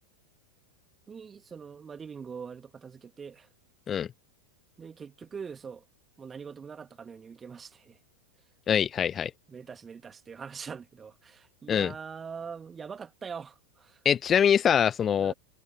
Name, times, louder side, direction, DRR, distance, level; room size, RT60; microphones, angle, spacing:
voice 1, 1.1-3.5 4.8-5.8 6.2-8.0 9.5-14.0 15.2-15.3, right 6 dB, 20° right, 2.7 m, -43 dB
voice 2, 8.7-9.3 11.7-11.9 14.1-15.3, left 8 dB, 25° left, 0.5 m, -24 dB
figure-of-eight pair, 90°, 0 cm